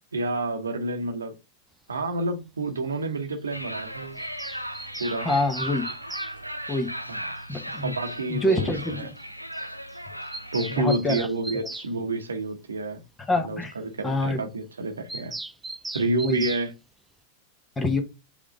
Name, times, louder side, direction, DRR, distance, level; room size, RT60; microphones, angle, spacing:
voice 1, 0.1-1.4 1.9-4.2 5.0-5.3 7.1-7.2 7.8-9.1 10.5-13.0 13.4-15.3 15.9-16.7, right 2 dB, 75° right, 1.0 m, -29 dB
sound 1, 3.5-10.8, equal, 90° right, 0.5 m, -36 dB
Bird vocalization bird call bird song, 4.2-6.3 7.8-7.9 8.1-8.2 8.4-8.5 8.8-8.9 9.2-9.3 9.5-9.7 9.9-11.9 15.1-16.7, right 2 dB, 5° right, 0.4 m, -38 dB
voice 2, 5.2-5.9 6.7-6.9 7.5-7.9 8.3-9.1 10.7-11.3 13.3-13.7 14.0-14.4 16.2-16.5 17.8-18.0, left 2 dB, 15° left, 1.1 m, -25 dB
5.1 x 3.5 x 5.1 m
figure-of-eight pair, 90°, 0 cm